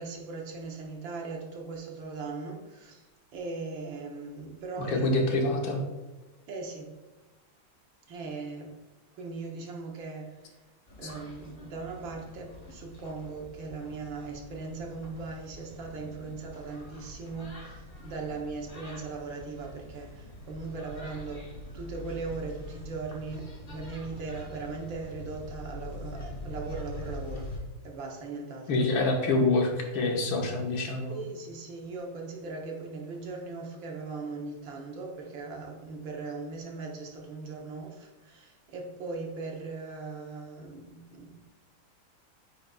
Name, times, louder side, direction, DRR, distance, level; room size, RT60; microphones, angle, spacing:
voice 1, 0.0-5.4 6.5-6.9 8.1-8.7 9.1-10.6 11.0-27.5 27.8-28.9 31.1-41.5, right 4 dB, 65° right, 0 dB, 1.7 m, -39 dB
voice 2, 4.8-5.8 11.0-11.1 28.7-31.2, left 2 dB, 70° left, 1 dB, 1.8 m, -26 dB
sound 1, 10.9-27.6, left 1 dB, 30° left, 1.1 m, -44 dB
9.3 x 5.2 x 2.3 m, 1.1 s
omnidirectional pair, 2.3 m